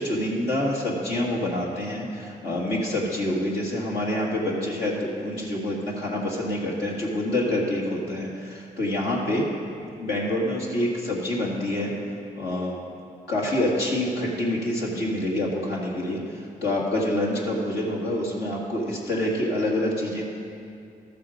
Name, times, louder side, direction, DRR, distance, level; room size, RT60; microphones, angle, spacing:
voice 1, 0.0-9.5 10.0-11.9 12.4-12.8 13.3-20.2, left 1 dB, 85° left, -3 dB, 2.0 m, -27 dB
13.0 x 6.9 x 5.0 m, 2.4 s
supercardioid pair, 55°, 17 cm